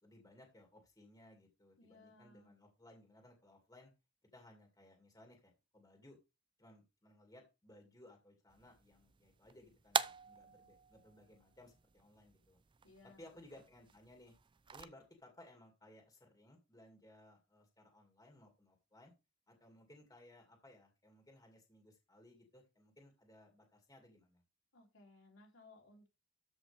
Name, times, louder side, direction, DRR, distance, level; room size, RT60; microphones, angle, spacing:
voice 1, 0.0-3.9 4.3-6.2 6.6-12.6 13.0-14.3 14.7-19.1 19.5-24.4, left 1 dB, 20° left, 2 dB, 2.2 m, -61 dB
voice 2, 1.8-2.5 12.8-13.7 24.7-26.1, left 2 dB, 85° left, 0 dB, 3.2 m, -62 dB
sound 1, 8.5-14.9, right 6 dB, 25° right, 0.4 m, -44 dB
13.0 x 5.4 x 3.4 m, 0.27 s
head